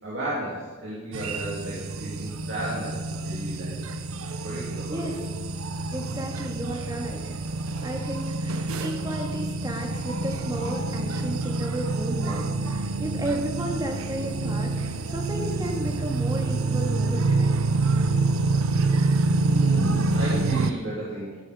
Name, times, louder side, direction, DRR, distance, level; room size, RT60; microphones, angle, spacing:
voice 1, 0.0-3.8 4.4-5.1 19.4-21.4, right 1 dB, 60° right, -7 dB, 3.0 m, -34 dB
sound 1, 1.1-20.7, right 3 dB, 90° right, 0.8 m, -27 dB
voice 2, 5.9-7.5 7.8-17.7, right 1 dB, 20° right, 1 dB, 1.9 m, -33 dB
14.0 x 11.5 x 5.1 m, 1.4 s
head